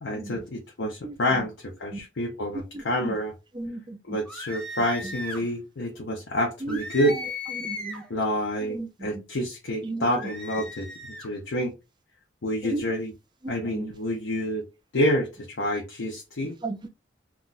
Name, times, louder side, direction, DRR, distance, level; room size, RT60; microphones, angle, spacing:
voice 1, 0.0-3.3 4.0-7.2 8.1-10.9 11.2-11.7 12.4-13.1 13.5-14.7 14.9-16.5, equal, 80° left, 0.7 m, -28 dB
voice 2, 2.7-3.1 3.5-4.2 6.6-6.8 7.6-8.0 8.6-9.2 9.8-10.1 12.6-12.8 13.7-13.9 16.6-16.9, right 2 dB, 25° right, 0.4 m, -34 dB
sound 1, 4.3-5.5 6.7-8.1 10.1-11.3, left 2 dB, 5° left, 0.8 m, -36 dB
2.3 x 2.3 x 3.9 m
head